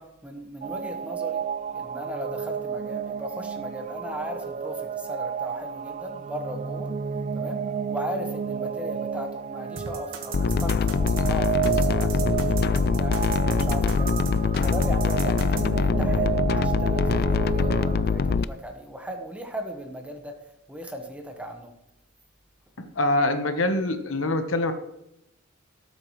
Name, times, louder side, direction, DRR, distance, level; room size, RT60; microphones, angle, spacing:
voice 1, 0.2-1.5 1.7-6.9 7.3-13.2 13.5-14.3 14.6-21.7, equal, 5° right, 4 dB, 1.3 m, -37 dB
sound 1, 0.6-18.4, right 7 dB, 35° right, 0.3 m, -32 dB
sound 2, 9.8-15.7, right 4 dB, 75° right, 1.5 m, -35 dB
sound 3, 10.3-18.4, left 5 dB, 50° left, 0.4 m, -23 dB
voice 2, 22.8-24.7, left 2 dB, 75° left, 7 dB, 1.2 m, -24 dB
18.5 x 8.5 x 3.2 m, 0.86 s
head